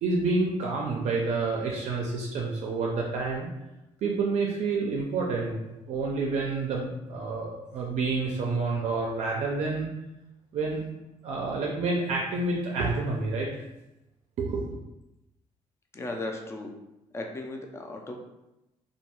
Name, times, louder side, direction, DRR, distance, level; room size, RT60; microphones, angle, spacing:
voice 1, 0.0-3.5 4.0-9.9 10.5-10.8 11.2-13.6 14.4-14.8, right 3 dB, 65° right, -2 dB, 0.4 m, -29 dB
voice 2, 15.9-16.8 17.1-18.2, left 2 dB, 20° left, 2 dB, 0.4 m, -36 dB
2.3 x 2.2 x 2.9 m, 0.93 s
cardioid pair, 115°, 12 cm